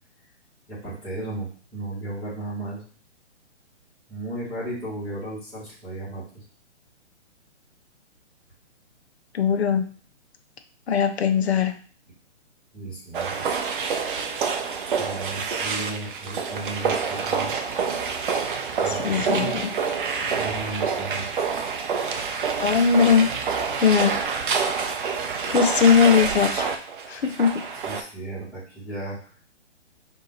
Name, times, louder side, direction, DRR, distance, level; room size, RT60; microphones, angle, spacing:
voice 1, 0.7-2.8 4.1-6.4 12.7-13.4 15.0-17.6 18.8-19.7 20.2-21.2 27.8-29.2, right 2 dB, 5° left, -16 dB, 1.7 m, -34 dB
voice 2, 9.3-9.9 10.9-11.7 18.9-19.7 22.6-23.3 23.8-24.2 25.0-25.2 25.5-26.7 27.1-27.7, left 7 dB, 60° left, 7 dB, 0.7 m, -20 dB
sound 1, 13.1-28.0, right 5 dB, 45° right, 0.6 m, -27 dB
3.8 x 2.8 x 4.0 m, 0.43 s
figure-of-eight pair, 135°, 36 cm